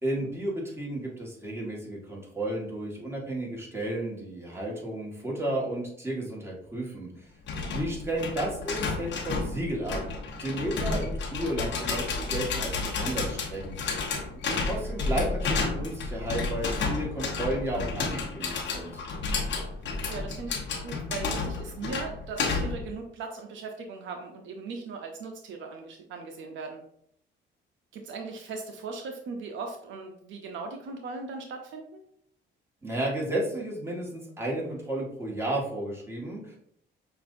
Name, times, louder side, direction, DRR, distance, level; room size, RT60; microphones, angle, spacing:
voice 1, 0.0-7.3 7.7-10.0 10.4-13.7 14.3-19.0 32.8-36.6, right 1 dB, 10° right, -3 dB, 1.6 m, -33 dB
sound 1, 7.5-22.9, left 4 dB, 65° left, 1.0 m, -31 dB
voice 2, 20.1-26.8 27.9-32.0, right 4 dB, 75° right, 3 dB, 0.6 m, -39 dB
5.9 x 2.6 x 2.6 m, 0.67 s
cardioid pair, 90°, 20 cm